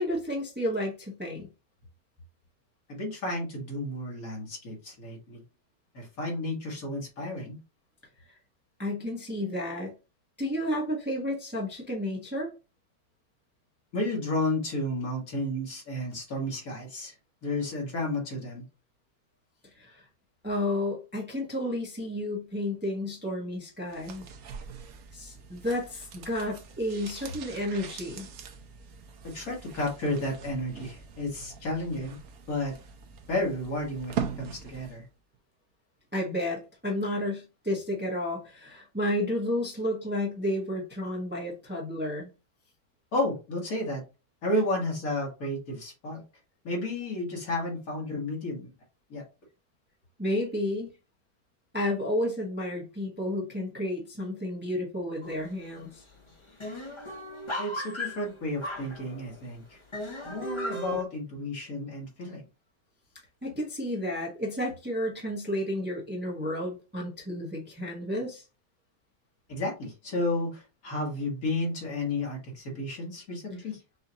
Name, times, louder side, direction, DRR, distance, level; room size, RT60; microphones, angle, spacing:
voice 1, 0.0-1.5 8.8-9.9 10.4-12.5 19.7-20.0 20.4-24.2 25.1-28.3 36.1-42.3 50.2-50.9 51.7-56.0 63.4-68.4, left 1 dB, 5° right, 1.0 m, -31 dB
voice 2, 2.9-5.4 5.9-7.6 13.9-17.1 17.4-18.6 29.2-32.2 32.5-32.8 33.3-35.1 43.1-44.0 44.4-46.2 46.6-48.7 49.1-49.2 57.6-59.8 60.2-62.4 69.5-73.8, left 1 dB, 60° left, 2.0 m, -32 dB
sound 1, 23.9-35.1 35.3-35.4, right 8 dB, 65° right, 1.1 m, -41 dB
sound 2, 55.2-55.6 55.9-56.0 56.3-59.4 59.9-61.0, equal, 25° left, 0.6 m, -37 dB
5.6 x 2.8 x 2.8 m
omnidirectional pair, 1.8 m